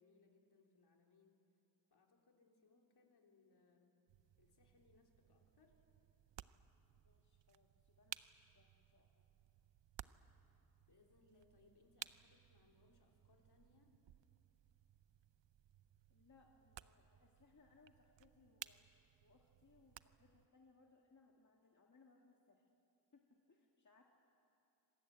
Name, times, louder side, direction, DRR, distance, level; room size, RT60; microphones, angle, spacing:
voice 1, 0.0-1.5 1.9-4.0 4.4-5.8 10.8-14.0, left 3 dB, 65° left, 1 dB, 3.7 m, -72 dB
sound 1, 4.1-20.5, right 11 dB, 80° right, 0.7 m, -59 dB
voice 2, 7.0-8.2 8.5-9.2 16.1-18.8 19.2-22.7 23.1-24.0, left 4 dB, 40° left, 0 dB, 2.1 m, -70 dB
26.5 x 19.5 x 9.0 m, 2.7 s
wide cardioid pair, 100°, 43 cm